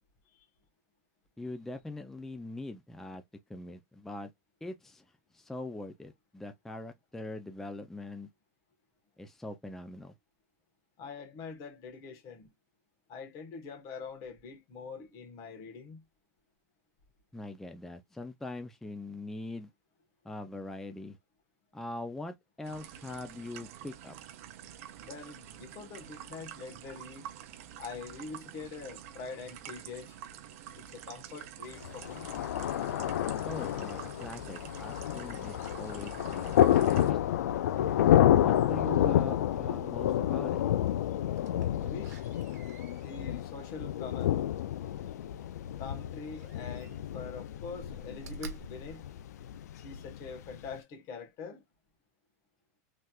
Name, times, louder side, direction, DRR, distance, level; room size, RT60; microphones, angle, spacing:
voice 1, 1.4-3.2 3.5-4.3 4.6-5.0 5.3-8.3 9.2-10.1 17.3-19.7 20.2-21.2 21.7-24.2 33.4-37.2 38.2-40.6, left 2 dB, 5° left, 0.4 m, -42 dB
voice 2, 11.0-12.5 13.1-16.0 25.0-27.3 27.8-30.2 30.7-32.3 41.8-42.2 42.9-44.3 45.8-49.0 49.7-51.6, left 4 dB, 45° left, 1.2 m, -44 dB
sound 1, 22.6-37.1, right 10 dB, 60° right, 0.6 m, -48 dB
Thunder, 31.8-50.7, left 11 dB, 90° left, 0.4 m, -29 dB
Slam, 41.3-45.2 46.3-47.2 47.6-49.9 50.4-50.5, right 2 dB, 85° right, 0.9 m, -50 dB
3.3 x 2.8 x 2.3 m
supercardioid pair, 135°, 9 cm